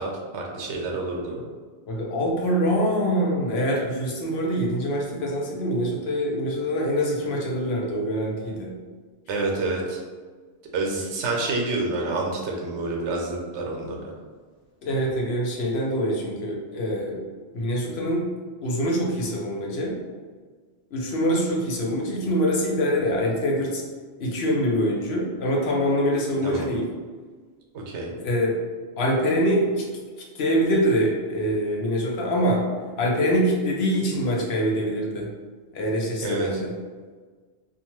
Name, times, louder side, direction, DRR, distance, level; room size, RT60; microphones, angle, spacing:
voice 1, 0.0-1.4 9.3-10.0 10.7-14.1 26.4-26.8 27.7-28.1 36.2-36.6, right 2 dB, 80° right, -1 dB, 0.9 m, -28 dB
voice 2, 1.9-8.7 14.8-17.2 17.5-18.3 18.6-20.0 20.9-23.8 24.2-26.9 28.2-28.6 29.0-29.9 30.3-32.7 33.0-35.3 35.7-36.7, equal, 70° left, -2 dB, 0.8 m, -24 dB
2.5 x 2.3 x 2.9 m, 1.5 s
omnidirectional pair, 1.2 m